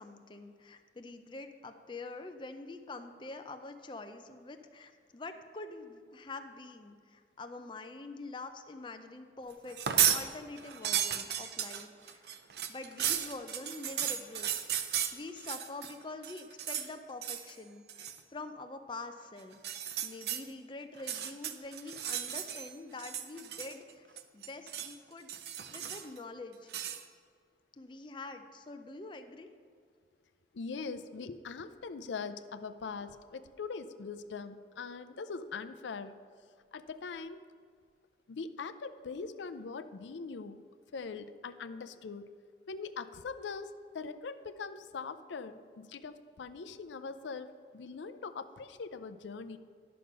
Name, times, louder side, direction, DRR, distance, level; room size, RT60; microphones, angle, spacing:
voice 1, 0.0-9.8 10.1-12.2 12.7-14.6 15.1-24.1 24.3-25.3 25.6-26.7 27.8-29.5, left 3 dB, 25° left, 7 dB, 0.5 m, -45 dB
sound 1, 9.7-10.2 10.6-15.9 16.2-16.9 17.2-17.5 17.9-18.2 19.5-20.4 20.9-22.7 23.0-23.9 24.2-24.9 25.3-26.2 26.7-27.0, right 9 dB, 60° right, 0.6 m, -34 dB
voice 2, 30.5-36.1 36.7-37.4 38.3-40.6 40.9-42.3 42.7-49.6, left 4 dB, 80° left, 10 dB, 0.5 m, -42 dB
11.0 x 6.6 x 5.4 m, 2.1 s
head